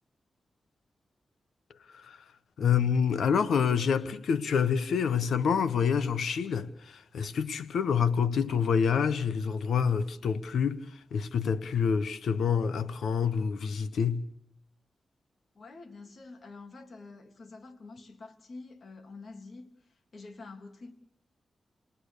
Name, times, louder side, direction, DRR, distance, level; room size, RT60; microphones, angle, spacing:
voice 1, 2.6-10.8 11.1-14.2, left 6 dB, 90° left, 1.3 m, -27 dB
voice 2, 15.5-19.7 20.1-20.9, left 3 dB, 55° left, 3.0 m, -47 dB
29.5 x 19.0 x 6.8 m
cardioid pair, 70°, 0 cm